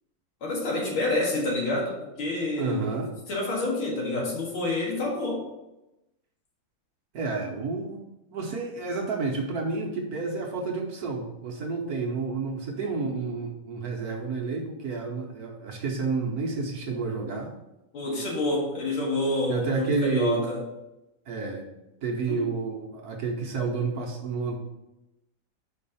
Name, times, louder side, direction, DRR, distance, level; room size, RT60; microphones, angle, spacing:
voice 1, 0.4-2.9 3.3-5.4 17.9-20.6 22.3-22.5, left 2 dB, 85° left, -2 dB, 2.5 m, -28 dB
voice 2, 2.6-3.1 7.1-8.0 8.3-17.5 19.5-20.4 21.3-21.7 22.0-24.6, right 4 dB, 60° right, 0 dB, 1.2 m, -30 dB
5.4 x 4.6 x 5.5 m, 0.95 s
omnidirectional pair, 2.2 m